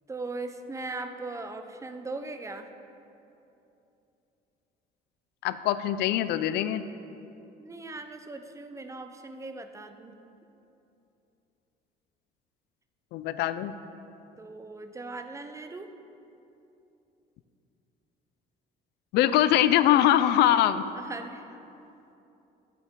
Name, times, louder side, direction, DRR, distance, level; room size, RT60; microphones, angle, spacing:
voice 1, 0.1-2.7 7.6-10.2 14.4-15.9 21.0-21.6, right 3 dB, 15° right, 7 dB, 0.6 m, -39 dB
voice 2, 5.4-6.8 13.1-13.7 19.1-20.8, left 12 dB, 80° left, 13 dB, 0.4 m, -23 dB
10.5 x 9.1 x 3.7 m, 2.8 s
cardioid pair, 110°, 17 cm